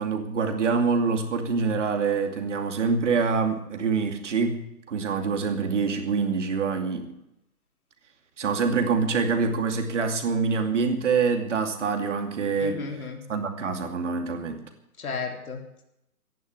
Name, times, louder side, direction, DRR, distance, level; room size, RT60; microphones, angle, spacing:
voice 1, 0.0-4.6 4.9-7.1 8.4-12.8 13.3-14.6, right 5 dB, 50° right, 6 dB, 2.6 m, -25 dB
voice 2, 12.6-13.2 15.0-15.8, left 5 dB, 65° left, 2 dB, 3.7 m, -33 dB
14.0 x 11.0 x 8.3 m, 0.83 s
hypercardioid pair, 165°, 45 cm